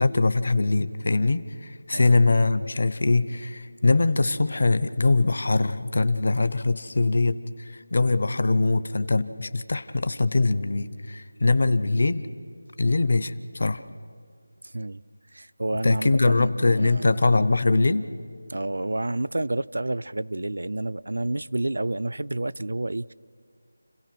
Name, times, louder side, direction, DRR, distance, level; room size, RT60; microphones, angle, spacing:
voice 1, 0.0-12.3 12.8-13.8 15.8-18.0, left 3 dB, 50° left, 13 dB, 0.8 m, -22 dB
voice 2, 14.6-15.0 15.3-17.5 18.5-23.1, right 2 dB, 80° right, 16 dB, 0.5 m, -30 dB
30.0 x 17.0 x 6.1 m, 2.1 s
figure-of-eight pair, 175°, 0 cm